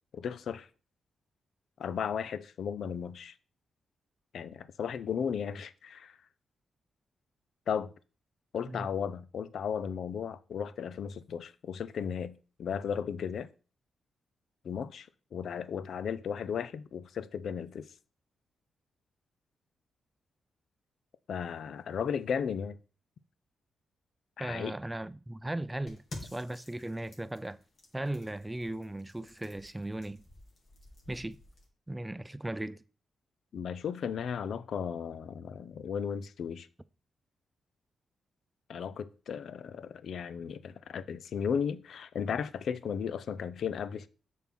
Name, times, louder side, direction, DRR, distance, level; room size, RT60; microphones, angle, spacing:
voice 1, 0.1-0.7 1.8-3.3 4.3-6.2 7.7-7.9 8.5-13.5 14.6-17.9 21.3-22.8 24.4-24.8 33.5-36.7 38.7-44.1, left 7 dB, 70° left, 0.5 m, -35 dB
voice 2, 24.4-26.0 26.3-27.6 27.9-30.2 31.1-31.4 31.9-32.8, right 1 dB, 15° right, 0.5 m, -37 dB
sound 1, 25.9-31.7, left 2 dB, 55° left, 2.7 m, -51 dB
7.1 x 4.3 x 6.1 m
cardioid pair, 65°, 0 cm